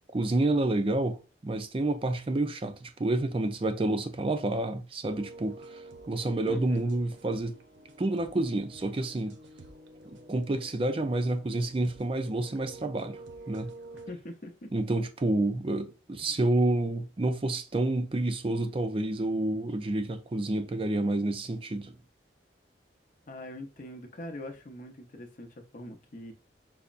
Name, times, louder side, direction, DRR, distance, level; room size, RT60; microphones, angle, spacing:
voice 1, 0.1-5.8 6.1-7.6 8.0-9.4 10.0-13.7 14.7-22.0, right 2 dB, 30° right, 0.4 m, -29 dB
sound 1, 5.1-14.1, right 2 dB, 90° right, 0.6 m, -49 dB
voice 2, 6.4-6.9 13.9-14.7 16.2-16.4 23.3-26.3, left 1 dB, 45° left, 0.7 m, -43 dB
5.5 x 2.0 x 2.5 m
head